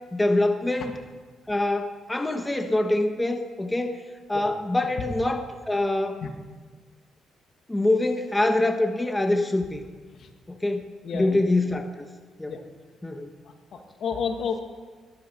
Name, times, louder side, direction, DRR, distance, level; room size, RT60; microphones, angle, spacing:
voice 1, 0.1-1.0 1.5-4.0 4.3-6.2 7.7-9.8 10.5-10.8 11.1-12.1 12.4-12.5 13.0-13.3, left 2 dB, 10° left, 6 dB, 1.2 m, -25 dB
voice 2, 11.0-11.4 12.5-12.6 13.7-14.6, left 6 dB, 65° left, 4 dB, 2.1 m, -30 dB
20.5 x 11.5 x 5.5 m, 1.4 s
cardioid pair, 90°, 0 cm